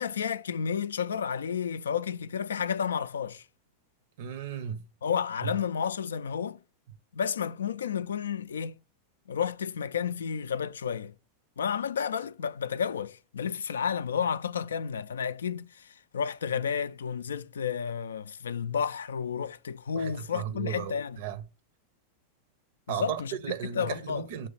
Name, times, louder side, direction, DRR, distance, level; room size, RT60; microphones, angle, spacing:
voice 1, 0.0-3.4 5.0-6.6 7.1-8.8 9.3-11.1 11.6-21.2 22.9-24.2, left 7 dB, 65° left, 0.3 m, -31 dB
voice 2, 4.2-4.8 5.4-5.5 19.9-21.4 22.9-24.5, right 9 dB, 50° right, 0.7 m, -35 dB
6.9 x 3.1 x 5.5 m
figure-of-eight pair, 90°, 0 cm